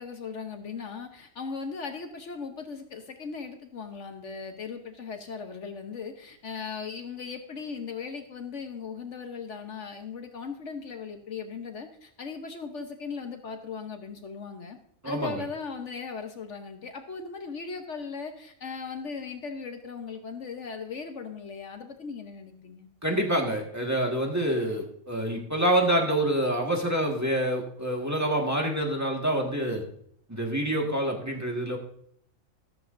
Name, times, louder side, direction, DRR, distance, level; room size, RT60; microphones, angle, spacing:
voice 1, 0.0-14.8 15.0-22.9, left 5 dB, 60° left, 5 dB, 1.2 m, -38 dB
voice 2, 15.0-15.4 23.0-29.8 30.3-31.8, right 1 dB, 10° right, -1 dB, 1.6 m, -27 dB
14.0 x 13.5 x 2.6 m, 0.66 s
omnidirectional pair, 1.4 m